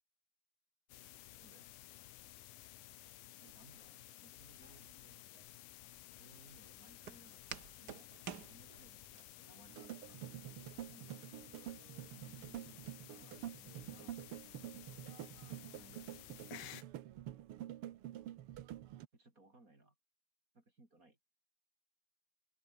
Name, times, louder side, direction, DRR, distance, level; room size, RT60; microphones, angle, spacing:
sound 1, 0.9-16.8, left 15 dB, 80° left, 2.7 m, -55 dB
voice 1, 1.4-1.8 3.4-5.2 6.2-8.1 8.5-10.4 10.9-11.3 12.1-14.5 15.7-16.4 19.1-19.9 20.5-21.2, right 2 dB, 25° right, 4.8 m, -65 dB
Walk footsteps, 4.6-9.2, right 8 dB, 50° right, 1.2 m, -52 dB
sound 2, 9.7-19.1, right 12 dB, 75° right, 1.3 m, -48 dB
open air
omnidirectional pair, 3.7 m